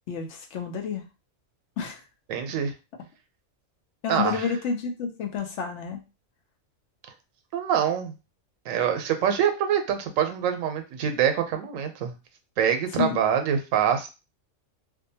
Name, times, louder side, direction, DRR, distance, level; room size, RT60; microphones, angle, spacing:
voice 1, 0.1-1.0 1.8-2.0 4.0-6.0 13.0-13.1, left 6 dB, 70° left, 3 dB, 0.9 m, -29 dB
voice 2, 2.3-2.7 4.1-4.5 7.5-8.1 8.7-12.1 12.6-14.1, right 8 dB, 90° right, 6 dB, 1.0 m, -25 dB
2.6 x 2.2 x 2.7 m, 0.28 s
omnidirectional pair, 1.3 m